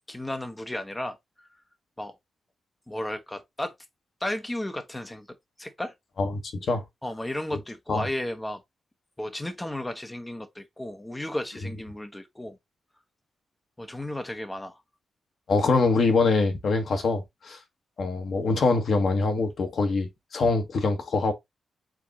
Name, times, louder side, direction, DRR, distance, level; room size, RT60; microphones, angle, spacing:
voice 1, 0.1-1.5 2.0-2.2 2.9-3.7 4.2-5.3 5.6-5.9 7.0-8.6 9.2-12.6 13.8-14.8, left 1 dB, 10° left, 0.7 m, -34 dB
voice 2, 15.5-17.6 18.0-21.3, left 3 dB, 60° left, 1.2 m, -24 dB
4.6 x 3.5 x 2.8 m
cardioid pair, 115°, 0 cm